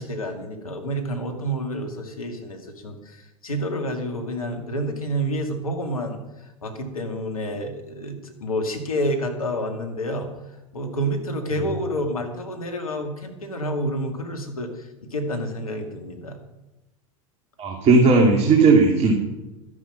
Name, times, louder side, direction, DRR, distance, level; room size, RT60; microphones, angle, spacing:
voice 1, 0.0-10.3 10.7-16.4, equal, 85° left, 4 dB, 2.2 m, -29 dB
voice 2, 17.6-19.1, right 4 dB, 35° right, 1 dB, 2.5 m, -16 dB
13.0 x 11.0 x 5.7 m, 1.0 s
hypercardioid pair, 85°, 18 cm